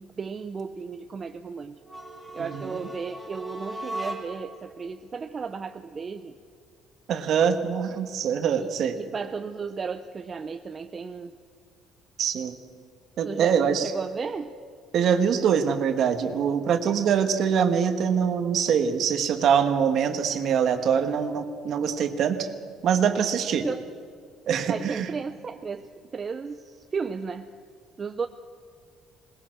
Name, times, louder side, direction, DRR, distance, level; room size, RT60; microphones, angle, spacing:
voice 1, 0.0-1.8 2.3-6.3 8.6-8.7 9.0-11.3 13.2-14.5 23.5-23.8 24.7-27.5 28.0-28.3, right 5 dB, 25° right, 8 dB, 0.5 m, -34 dB
sound 1, 1.8-4.6, right 1 dB, 5° right, 3.1 m, -37 dB
voice 2, 2.4-2.8 7.1-9.0 12.2-12.6 13.2-13.9 14.9-22.5 22.8-23.7 24.5-25.1, right 7 dB, 45° right, 8 dB, 1.4 m, -24 dB
21.5 x 20.0 x 6.3 m, 2.2 s
cardioid pair, 165°, 0 cm